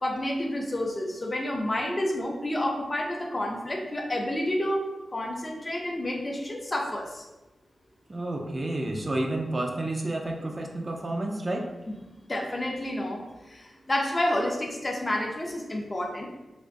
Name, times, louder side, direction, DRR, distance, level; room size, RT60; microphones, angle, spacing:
voice 1, 0.0-4.8 5.1-7.3 11.9-12.0 12.3-16.3, left 1 dB, 30° left, 1 dB, 0.5 m, -29 dB
voice 2, 8.1-11.7, right 1 dB, 30° right, 1 dB, 0.4 m, -30 dB
3.3 x 2.9 x 2.6 m, 1.0 s
wide cardioid pair, 100°, 0 cm